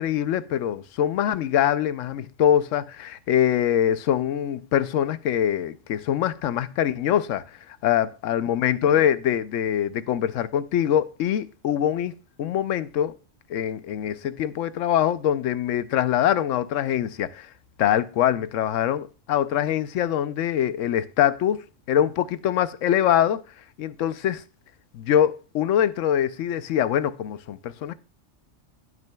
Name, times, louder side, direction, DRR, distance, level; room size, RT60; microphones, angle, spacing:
voice 1, 0.0-12.1 12.4-13.1 13.5-17.5 17.8-23.4 23.8-24.4 24.9-27.9, left 10 dB, 85° left, 1.0 m, -24 dB
18.0 x 6.1 x 2.2 m
omnidirectional pair, 1.3 m